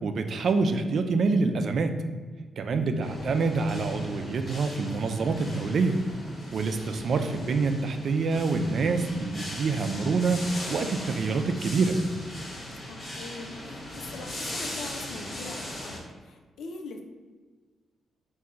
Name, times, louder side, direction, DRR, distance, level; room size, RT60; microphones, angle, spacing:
voice 1, 0.0-2.0 2.6-6.0 6.5-10.4 10.7-12.0, right 4 dB, 65° right, 7 dB, 0.4 m, -26 dB
voice 2, 2.7-3.2 12.9-17.0, left 3 dB, 80° left, 4 dB, 0.5 m, -42 dB
sound 1, 3.0-16.0, left 1 dB, 45° left, 1.4 m, -39 dB
4.3 x 2.6 x 3.7 m, 1.4 s
cardioid pair, 80°, 0 cm